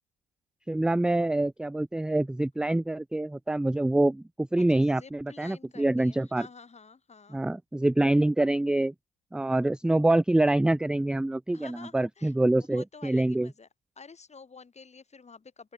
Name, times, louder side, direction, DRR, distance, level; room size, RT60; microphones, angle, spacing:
voice 1, 0.7-6.5 7.3-8.9 9.3-13.5, right 1 dB, 5° right, 0.4 m, -25 dB
voice 2, 4.6-7.4 11.5-12.4 12.7-13.7 14.0-15.7, left 5 dB, 20° left, 2.9 m, -50 dB
open air
hypercardioid pair, 75°, 29 cm